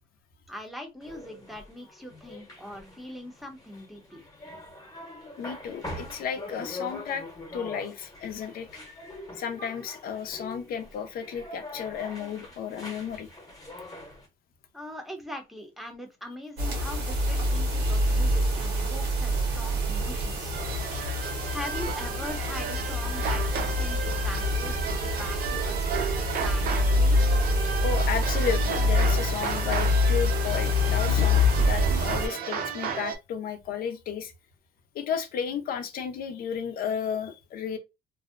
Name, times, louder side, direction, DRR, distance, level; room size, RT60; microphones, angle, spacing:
voice 1, 0.5-4.2 14.7-20.6 21.5-27.4, left 1 dB, ahead, 0.7 m, -41 dB
sound 1, 1.0-14.3, left 1 dB, 20° left, 0.9 m, -43 dB
voice 2, 5.4-7.3 7.5-13.3 27.8-34.3 34.9-37.8, left 7 dB, 60° left, 0.6 m, -33 dB
sound 2, 16.6-32.3, left 1 dB, 80° right, 1.1 m, -26 dB
sound 3, 20.5-33.2, right 7 dB, 60° right, 0.6 m, -34 dB
2.6 x 2.0 x 2.4 m
cardioid pair, 110°, 17 cm